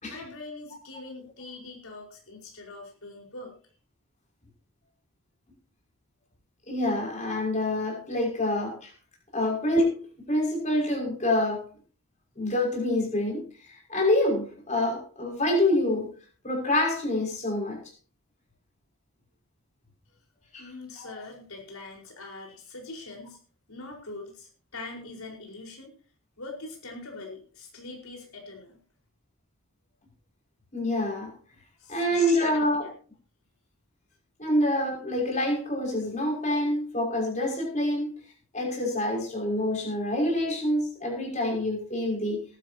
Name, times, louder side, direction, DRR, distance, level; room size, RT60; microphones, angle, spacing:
voice 1, 0.1-3.5 9.4-9.5 20.6-23.4 23.7-25.9 26.4-28.8 31.8-32.9, left 2 dB, 80° left, 0 dB, 4.8 m, -43 dB
voice 2, 6.7-8.9 9.3-11.7 12.4-13.4 13.9-16.1 16.4-17.8 20.5-20.7 21.0-21.1 30.7-31.3 31.9-32.9 34.4-38.2 38.5-42.4, left 1 dB, 35° left, -1 dB, 5.9 m, -26 dB
20.0 x 12.0 x 2.9 m, 0.40 s
head